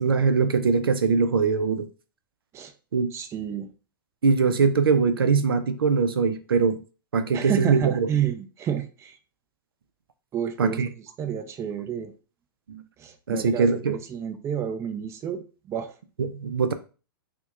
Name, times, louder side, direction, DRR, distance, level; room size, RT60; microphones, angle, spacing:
voice 1, 0.0-1.9 2.9-3.1 4.2-6.8 7.1-8.1 10.6-10.9 12.7-12.8 13.3-14.0 16.2-16.7, right 5 dB, 80° right, 0.5 m, -22 dB
voice 2, 3.1-3.7 7.3-9.2 10.3-10.8 11.2-12.1 13.0-15.4 15.7-15.9, right 9 dB, 25° right, 0.5 m, -30 dB
5.7 x 2.2 x 2.4 m
hypercardioid pair, 110°, 12 cm